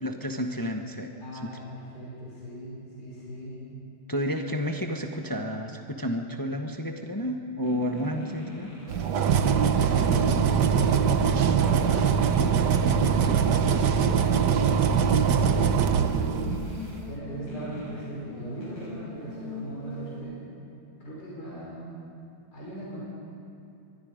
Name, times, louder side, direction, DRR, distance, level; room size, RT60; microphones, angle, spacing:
voice 1, 0.0-1.1 1.4-1.5 4.1-8.7, equal, 15° left, 4 dB, 0.7 m, -31 dB
voice 2, 1.2-3.7 9.7-11.0 11.6-12.2 12.6-14.5 15.0-15.9 17.1-20.4 21.0-22.0 22.5-23.0, right 1 dB, 45° left, -6 dB, 6.5 m, -38 dB
sound 1, 7.6-20.2, left 1 dB, 70° left, 6.9 m, -41 dB
sound 2, 8.9-16.9, right 7 dB, 60° right, 1.4 m, -22 dB
24.5 x 21.0 x 5.1 m, 2.7 s
omnidirectional pair, 2.2 m